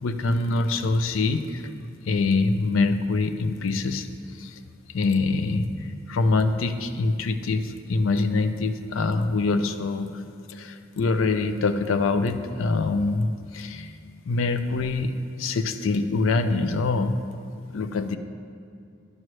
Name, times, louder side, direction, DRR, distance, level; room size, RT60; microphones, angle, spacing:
voice 1, 0.0-1.6 2.0-4.1 4.4-4.6 4.9-10.2 10.5-13.9 14.3-15.1 15.4-17.2 17.7-18.2, left 3 dB, 80° left, 9 dB, 0.4 m, -24 dB
11.0 x 6.1 x 3.2 m, 2.4 s
head